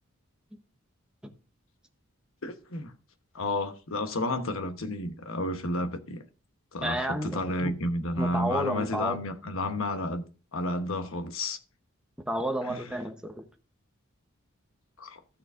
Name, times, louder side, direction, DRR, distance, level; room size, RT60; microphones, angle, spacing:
voice 1, 2.4-2.9 3.3-6.2 6.7-10.2 10.5-11.6 12.7-12.9 15.0-15.2, left 1 dB, 70° left, 1.1 m, -31 dB
voice 2, 6.8-7.7 8.2-9.2 12.3-13.5, right 1 dB, 5° right, 0.9 m, -31 dB
14.5 x 6.7 x 2.5 m
head